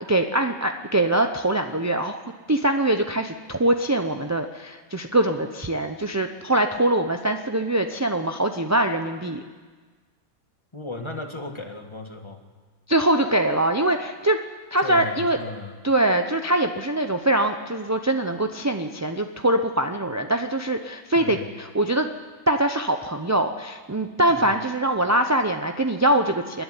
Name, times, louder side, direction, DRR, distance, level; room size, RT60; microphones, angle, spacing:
voice 1, 0.1-2.2 2.5-9.4 12.9-14.4 14.7-15.4 15.8-22.1 22.5-26.6, right 1 dB, 20° right, 5 dB, 0.4 m, -23 dB
voice 2, 10.7-12.4 14.8-15.8 21.1-21.5 24.3-24.5, left 2 dB, 20° left, 5 dB, 1.6 m, -36 dB
27.0 x 10.5 x 9.8 m, 1.4 s
omnidirectional pair, 1.6 m